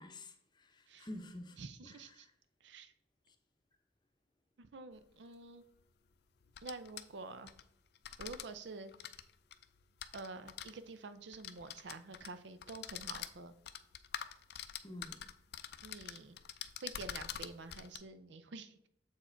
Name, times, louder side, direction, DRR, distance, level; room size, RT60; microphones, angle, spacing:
voice 1, 0.0-2.3 14.8-15.3, left 1 dB, 25° left, 0.7 m, -50 dB
voice 2, 1.6-2.3 2.6-2.9 4.6-5.6 6.6-7.5 8.2-9.2 10.1-13.5 15.8-16.4 16.8-18.9, right 3 dB, 70° right, 0.5 m, -48 dB
sound 1, 5.0-5.1 6.4-7.6 8.0-8.4 8.9-10.7 11.3-12.3 12.6-18.0, left 9 dB, 55° left, 0.4 m, -46 dB
7.2 x 4.6 x 4.4 m
head